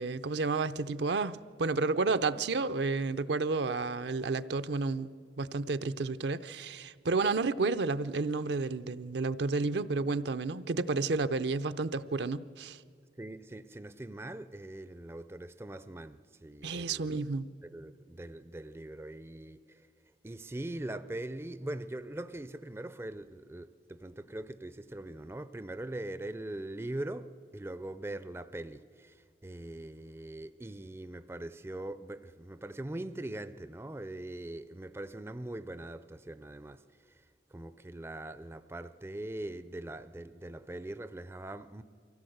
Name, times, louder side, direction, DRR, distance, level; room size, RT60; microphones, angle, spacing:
voice 1, 0.0-5.1 5.4-12.8 16.6-17.5, right 3 dB, 70° right, 0.6 m, -31 dB
voice 2, 13.2-17.2 17.6-19.9 20.2-37.3 37.5-41.8, right 1 dB, 15° right, 0.4 m, -42 dB
24.0 x 16.5 x 7.9 m
head